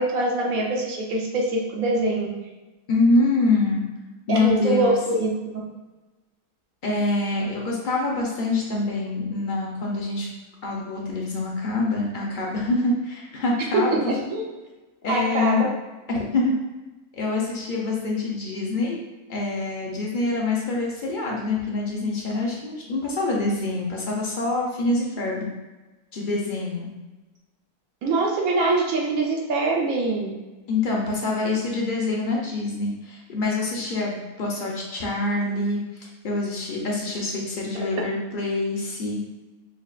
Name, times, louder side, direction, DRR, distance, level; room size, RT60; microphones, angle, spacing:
voice 1, 0.0-2.3 4.3-5.6 13.7-14.5 15.1-15.7 28.0-30.3 37.7-38.0, right 2 dB, 70° right, -1 dB, 1.1 m, -24 dB
voice 2, 2.9-3.8 4.3-5.0 6.8-10.3 10.6-14.0 15.0-15.7 16.1-16.5 17.1-19.0 19.3-25.5 26.1-26.9 30.7-35.8 36.2-39.3, left 3 dB, 45° left, -2 dB, 0.7 m, -25 dB
5.9 x 2.4 x 2.4 m, 1.2 s
omnidirectional pair, 1.6 m